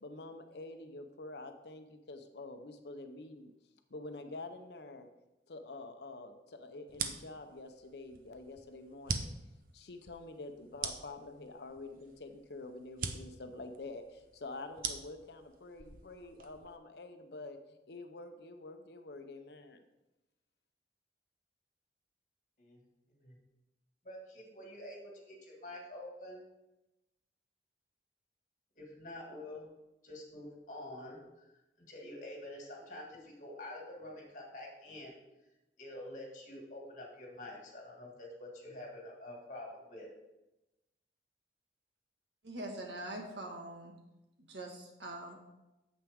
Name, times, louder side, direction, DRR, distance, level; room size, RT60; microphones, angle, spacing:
voice 1, 0.0-3.5 3.9-5.1 5.5-9.3 9.7-17.6 17.9-19.8, left 2 dB, 70° left, 7 dB, 0.7 m, -47 dB
sound 1, 6.9-16.8, right 5 dB, 50° right, 0.6 m, -43 dB
voice 2, 24.0-26.4 28.8-29.7 30.0-31.5 31.9-35.1 35.8-40.1, left 1 dB, 45° left, -1 dB, 2.1 m, -47 dB
voice 3, 42.4-43.9 44.5-45.4, right 1 dB, 80° right, 1 dB, 1.6 m, -43 dB
8.8 x 7.3 x 3.6 m, 0.99 s
head